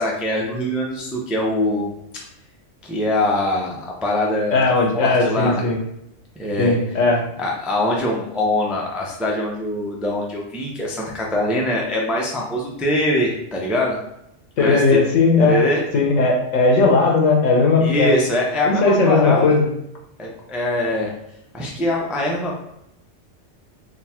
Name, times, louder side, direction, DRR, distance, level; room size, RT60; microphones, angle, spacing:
voice 1, 0.0-1.9 2.8-4.6 4.9-5.6 6.4-6.7 7.4-14.0 14.6-15.0 15.4-15.8 17.8-19.6 20.2-21.1 21.5-22.6, left 1 dB, ahead, -2 dB, 0.4 m, -23 dB
voice 2, 4.5-5.8 6.6-7.2 14.6-15.6 15.9-18.1 18.7-19.6, left 3 dB, 75° left, -1 dB, 1.3 m, -17 dB
3.8 x 2.3 x 4.2 m, 0.81 s
omnidirectional pair, 1.3 m